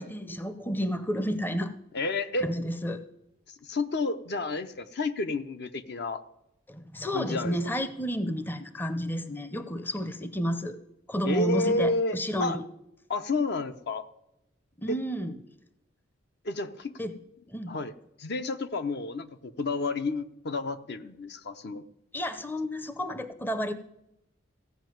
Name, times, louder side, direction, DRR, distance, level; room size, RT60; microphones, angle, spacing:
voice 1, 0.0-1.7 2.4-3.0 6.7-10.8 11.1-12.7 14.8-15.4 17.0-17.1 17.5-17.7 22.1-23.7, equal, 10° left, 11 dB, 0.6 m, -31 dB
voice 2, 1.9-2.5 3.6-6.2 7.1-7.6 11.3-12.6 13.1-14.0 14.9-15.0 16.4-16.9 17.7-17.9 18.2-21.8, left 2 dB, 55° left, 10 dB, 0.7 m, -30 dB
15.5 x 5.5 x 9.2 m, 0.83 s
head